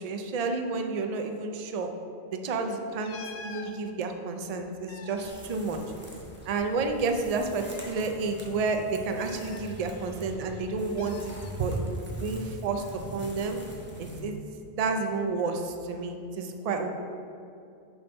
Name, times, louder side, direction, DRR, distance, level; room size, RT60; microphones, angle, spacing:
voice 1, 0.0-1.9 2.3-5.8 6.5-12.8 13.1-13.6 14.0-14.3 14.7-16.9, right 3 dB, 45° right, 5 dB, 0.5 m, -30 dB
sound 1, 3.0-3.8 4.7-6.3 6.6-6.7 7.5-8.0 9.2-10.2 11.0-11.5 12.8-13.0, left 4 dB, 55° left, 0.4 m, -46 dB
sound 2, 5.2-14.2, right 1 dB, 10° right, 0.9 m, -43 dB
6.8 x 4.4 x 5.4 m, 2.6 s
omnidirectional pair, 1.1 m